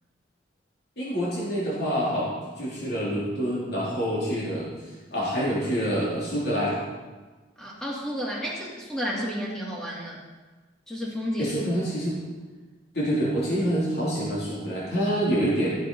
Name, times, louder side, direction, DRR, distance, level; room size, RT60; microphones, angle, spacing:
voice 1, 1.0-6.8 11.4-12.2 12.9-15.7, equal, 55° left, -7 dB, 3.5 m, -27 dB
voice 2, 7.6-10.2 10.9-11.6, equal, 5° left, -4 dB, 2.4 m, -31 dB
14.5 x 7.7 x 5.4 m, 1.3 s
head